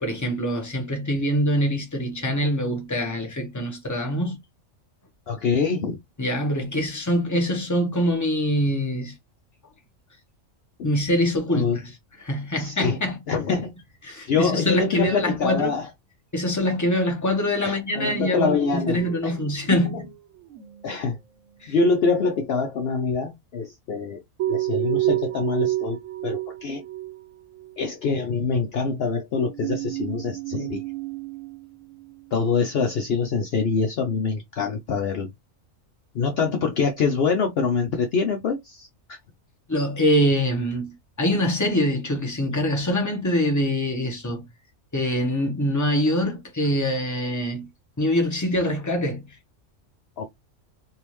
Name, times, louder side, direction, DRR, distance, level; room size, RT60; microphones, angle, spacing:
voice 1, 0.0-4.4 6.2-9.1 10.8-11.9 12.2-13.2 13.5-13.7 14.0-15.7 16.3-20.0 20.9-21.0 21.6-21.7 39.7-44.4 44.9-47.7 48.0-49.3, equal, 15° left, 1.0 m, -24 dB
voice 2, 5.3-6.0 10.8-10.9 11.5-11.8 12.6-13.0 13.3-13.7 14.3-15.9 17.6-19.3 19.7-20.0 20.8-21.2 21.7-26.8 27.8-30.8 32.3-35.3 36.1-38.9 50.2-50.3, left 5 dB, 60° left, 0.8 m, -25 dB
sound 1, 17.9-20.2 20.4-21.1 24.4-27.3 27.5-27.8 29.3-32.1, right 16 dB, 80° right, 1.0 m, -30 dB
3.5 x 2.7 x 3.0 m
omnidirectional pair, 1.3 m